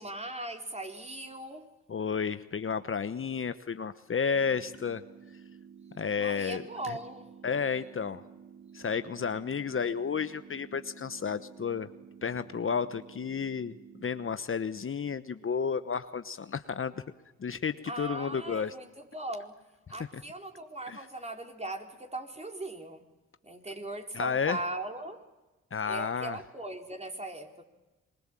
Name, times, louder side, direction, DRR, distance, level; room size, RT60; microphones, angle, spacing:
voice 1, 0.0-1.7 6.2-7.3 17.9-19.6 19.9-23.0 23.4-25.2 25.8-27.6, right 2 dB, 20° right, 2 dB, 4.4 m, -39 dB
voice 2, 1.9-5.0 6.0-6.6 6.9-7.0 7.4-8.2 8.7-11.9 12.2-16.9 17.4-18.7 20.1-20.2 20.9-21.0 24.1-24.6 25.7-26.4, left 6 dB, 45° left, 11 dB, 1.1 m, -32 dB
sound 1, 4.3-14.3, right 7 dB, 45° right, 2.1 m, -52 dB
27.0 x 22.0 x 7.6 m, 1.1 s
supercardioid pair, 50°, 30 cm